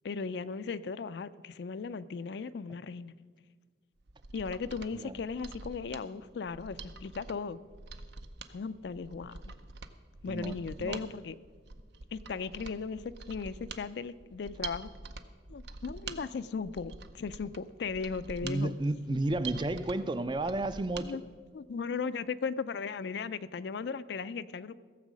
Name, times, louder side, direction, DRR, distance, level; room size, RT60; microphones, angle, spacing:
voice 1, 0.0-3.1 4.3-7.6 8.5-9.4 10.2-11.4 12.1-14.9 15.5-18.7 19.1-19.2 20.9-21.2 21.5-24.8, left 5 dB, 70° left, 14 dB, 0.4 m, -37 dB
Mechanisms, 4.0-21.1 21.4-21.5, right 4 dB, 70° right, 0.7 m, -46 dB
voice 2, 10.3-11.0 18.4-21.2, right 2 dB, 25° right, 12 dB, 0.4 m, -32 dB
15.5 x 7.3 x 6.2 m, 1.5 s
head